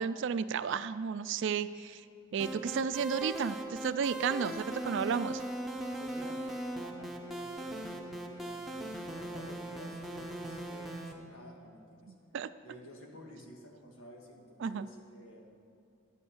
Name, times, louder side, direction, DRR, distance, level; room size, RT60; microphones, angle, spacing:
voice 1, 0.0-2.1 2.3-5.4 12.3-12.5 14.6-14.9, right 6 dB, 65° right, 14 dB, 0.4 m, -33 dB
sound 1, 2.4-11.1, right 1 dB, ahead, 0.9 m, -39 dB
voice 2, 6.0-12.1 12.6-15.5, equal, 90° left, 1 dB, 1.8 m, -52 dB
11.0 x 8.6 x 7.3 m, 2.5 s
head